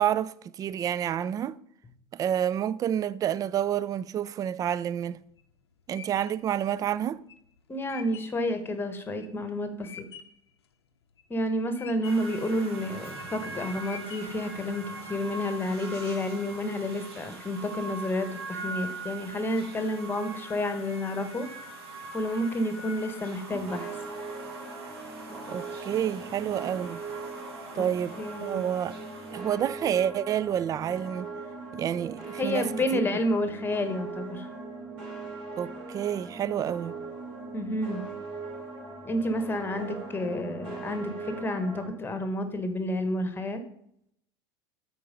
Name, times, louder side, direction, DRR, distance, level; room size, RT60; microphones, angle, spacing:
voice 1, 0.0-1.6 2.1-5.2 5.9-7.2 25.5-27.0 27.7-29.0 29.3-31.3 31.7-32.7 32.9-33.0 35.6-36.9, right 10 dB, 25° right, 0.3 m, -29 dB
sound 1, 5.0-10.5 10.9-11.5 11.8-12.4 12.9-13.4 13.8-14.5, left 8 dB, 75° left, 0.6 m, -47 dB
voice 2, 7.7-10.1 11.3-21.5 22.1-23.9 27.7-27.9 28.2-28.6 32.4-34.5 37.5-38.0 39.0-43.6, left 1 dB, 15° left, 1.3 m, -30 dB
sound 2, 12.0-29.3, right 2 dB, 70° right, 1.5 m, -42 dB
sound 3, 23.5-41.9, right 3 dB, 55° right, 3.6 m, -40 dB
8.4 x 4.5 x 5.3 m
figure-of-eight pair, 75°, 14 cm